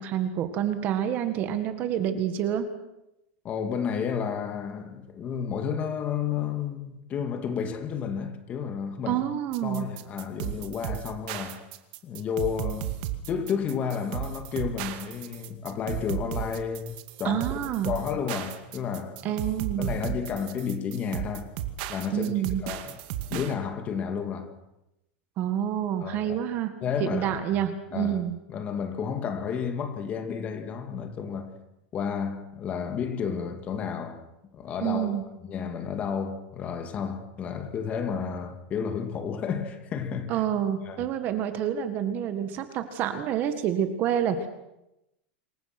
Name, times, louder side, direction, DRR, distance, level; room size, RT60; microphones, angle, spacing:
voice 1, 0.0-2.7 9.1-9.9 17.2-17.9 19.2-19.9 22.1-22.6 25.4-26.7 27.0-28.4 34.8-35.2 40.3-44.5, right 10 dB, 30° right, 1.8 m, -28 dB
voice 2, 3.4-9.3 9.6-11.6 12.0-12.9 13.3-19.4 19.8-21.5 21.9-22.3 22.6-23.0 23.3-24.5 26.0-26.4 26.8-27.6 27.9-28.2 28.5-31.5 31.9-34.2 34.5-35.2 35.5-40.5 40.8-41.1, left 7 dB, 20° left, 2.3 m, -31 dB
sound 1, 9.5-23.5, right 12 dB, 45° right, 2.3 m, -34 dB
27.0 x 22.5 x 6.2 m
supercardioid pair, 175°, 6 cm